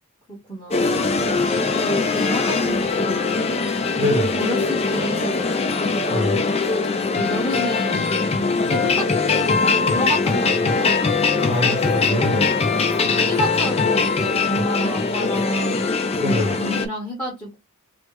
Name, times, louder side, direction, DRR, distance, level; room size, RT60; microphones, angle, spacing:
voice 1, 0.3-3.6 4.3-5.5 7.1-8.3 8.7-11.1 12.0-12.5 13.0-15.8 16.3-17.6, equal, 10° left, 1.2 m, -30 dB
sound 1, 0.7-16.9, left 4 dB, 30° left, 0.4 m, -21 dB
voice 2, 4.0-4.4 6.1-6.4 11.4-12.4 16.2-16.6, left 2 dB, 15° right, 0.8 m, -24 dB
3.2 x 2.1 x 3.0 m
head